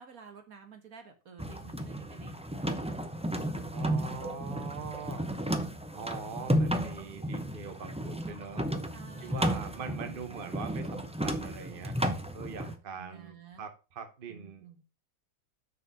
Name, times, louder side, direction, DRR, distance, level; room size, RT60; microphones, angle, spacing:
voice 1, 0.0-2.7 8.9-10.2 12.6-13.6 14.3-14.8, right 6 dB, 65° right, 6 dB, 1.8 m, -52 dB
sound 1, 1.4-12.7, equal, 10° right, 0.4 m, -33 dB
voice 2, 3.7-5.2 5.9-8.7 9.2-12.0 12.3-14.8, right 6 dB, 40° right, 7 dB, 1.1 m, -42 dB
6.6 x 4.9 x 6.1 m, 0.31 s
omnidirectional pair, 1.6 m